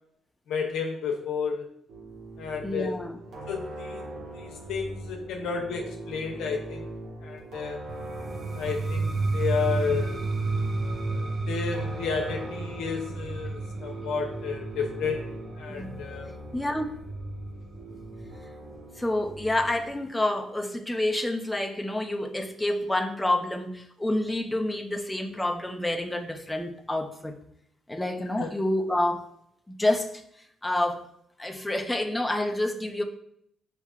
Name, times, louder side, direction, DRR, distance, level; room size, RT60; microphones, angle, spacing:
voice 1, 0.5-1.7 2.4-3.0 3.5-4.0 4.3-6.9 7.2-7.8 8.6-10.2 11.1-15.2 15.6-16.3 28.4-28.5, left 5 dB, 85° left, 2 dB, 0.7 m, -32 dB
sound 1, 1.9-20.0, right 2 dB, 75° right, 1.2 m, -41 dB
voice 2, 2.6-3.2 15.7-17.0 19.0-27.4 27.9-29.3 29.7-31.1 31.4-33.0, left 1 dB, 10° left, 3 dB, 0.5 m, -28 dB
sound 2, 7.9-17.7, right 3 dB, 45° right, 0.4 m, -32 dB
6.8 x 2.8 x 2.4 m, 0.71 s
cardioid pair, 90°, 0 cm